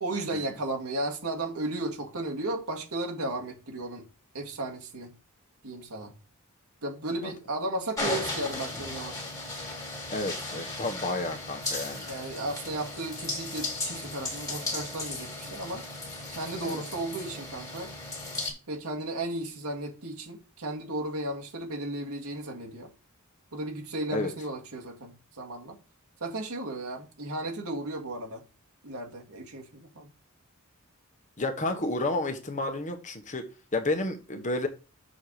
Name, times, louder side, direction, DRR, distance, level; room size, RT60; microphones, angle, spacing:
voice 1, 0.0-4.1 4.3-5.1 5.6-6.1 6.8-9.1 12.1-15.8 16.3-17.9 18.7-22.9 23.5-25.8 26.2-28.4 28.8-30.1, right 2 dB, 80° right, 1.9 m, -34 dB
sound 1, 8.0-18.5, left 2 dB, 15° left, 2.0 m, -36 dB
voice 2, 10.1-12.1 16.6-16.8 24.1-24.3 31.4-34.7, left 2 dB, 35° left, 1.1 m, -31 dB
6.3 x 4.6 x 6.6 m
head